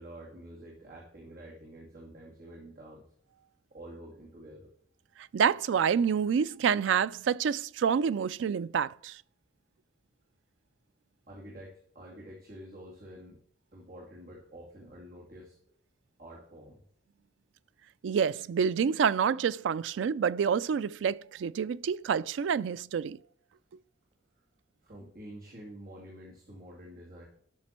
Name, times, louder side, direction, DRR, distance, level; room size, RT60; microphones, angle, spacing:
voice 1, 0.0-3.0 3.7-4.7 11.3-13.4 13.7-15.6 16.2-16.8 24.8-27.2, right 1 dB, 50° right, 2.4 m, -48 dB
voice 2, 5.3-9.2 18.0-23.2, right 7 dB, 80° right, 0.3 m, -28 dB
12.5 x 6.0 x 4.4 m
head